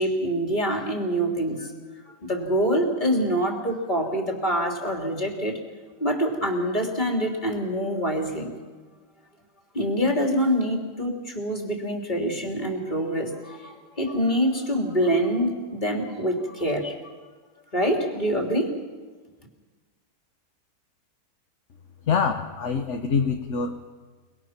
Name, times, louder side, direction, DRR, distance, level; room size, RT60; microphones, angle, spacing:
voice 1, 0.0-1.7 2.2-5.6 6.0-8.5 9.7-17.1 17.7-18.7, equal, 25° left, 1 dB, 3.4 m, -25 dB
voice 2, 22.1-23.9, left 5 dB, 50° left, 4 dB, 1.4 m, -25 dB
29.5 x 20.5 x 6.0 m, 1.4 s
omnidirectional pair, 1.7 m